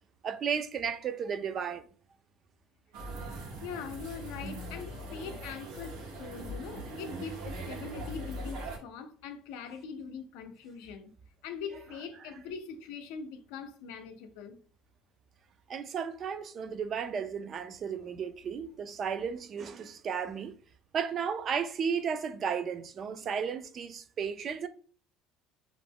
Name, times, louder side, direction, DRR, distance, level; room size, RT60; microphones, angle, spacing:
voice 1, 0.2-1.8 5.4-5.5 15.7-20.5 20.9-24.7, right 7 dB, 40° right, 0.3 m, -34 dB
sound 1, 2.9-8.8, right 1 dB, 80° right, 0.8 m, -41 dB
voice 2, 3.6-11.1 11.4-14.6, left 6 dB, 85° left, 0.5 m, -42 dB
2.4 x 2.1 x 3.5 m
cardioid pair, 135°, 0 cm